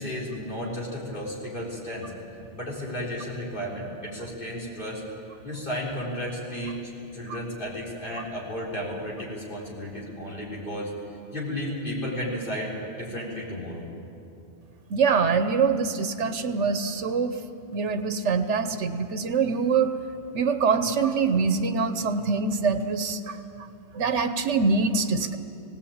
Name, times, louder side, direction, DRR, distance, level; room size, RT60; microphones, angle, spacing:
voice 1, 0.0-2.1 2.5-5.0 5.4-6.8 7.1-10.9 11.3-13.9, equal, 45° left, -5 dB, 4.2 m, -33 dB
voice 2, 14.9-17.4 17.7-19.9 20.3-23.4 23.9-25.4, right 5 dB, 85° right, 9 dB, 1.3 m, -24 dB
18.0 x 18.0 x 8.8 m, 2.8 s
omnidirectional pair, 1.2 m